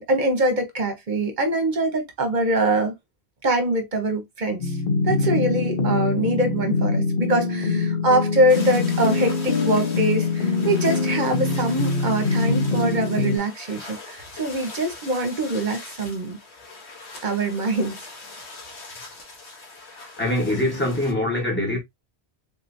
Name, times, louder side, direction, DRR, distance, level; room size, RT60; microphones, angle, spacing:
voice 1, 0.0-2.9 3.4-4.8 5.0-16.4 17.2-18.0, right 1 dB, 45° right, 1.1 m, -23 dB
sound 1, 4.6-13.4, left 3 dB, 60° left, 0.9 m, -24 dB
sound 2, 8.5-21.1, left 3 dB, 90° left, 1.5 m, -41 dB
voice 2, 20.0-21.8, left 1 dB, 10° left, 1.3 m, -24 dB
3.7 x 3.0 x 2.6 m
omnidirectional pair, 1.1 m